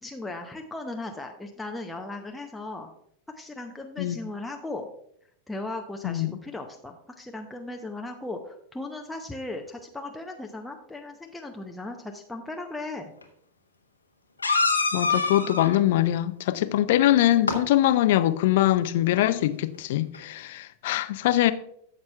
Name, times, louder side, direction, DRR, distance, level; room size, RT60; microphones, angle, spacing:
voice 1, 0.0-2.9 3.3-4.9 5.5-13.1, left 2 dB, 5° left, 0.7 m, -37 dB
voice 2, 6.0-6.4 14.9-21.5, left 13 dB, 55° left, 0.5 m, -23 dB
sound 1, 13.2-13.3 14.4-15.8 17.3-17.6 19.7-19.8 20.1-20.2, left 4 dB, 80° left, 0.9 m, -25 dB
13.0 x 7.3 x 2.3 m
figure-of-eight pair, 90°, 0 cm